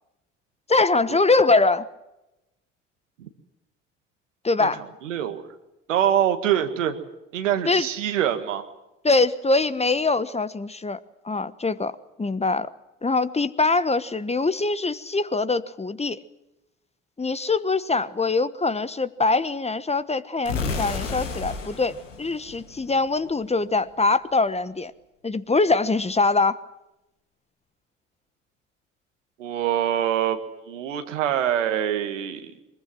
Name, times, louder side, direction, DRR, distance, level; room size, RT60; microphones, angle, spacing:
voice 1, 0.7-1.9 4.4-4.8 7.7-7.9 9.0-11.0 11.2-12.7 13.0-16.2 17.2-24.9 25.2-26.6, left 3 dB, 15° left, 1.1 m, -23 dB
voice 2, 4.6-5.4 5.9-7.0 7.3-8.7 29.4-30.4 30.7-32.5, right 10 dB, 85° right, 1.8 m, -25 dB
sound 1, 20.5-23.3, left 4 dB, 85° left, 2.4 m, -32 dB
23.0 x 21.0 x 7.7 m
hypercardioid pair, 60°, 36 cm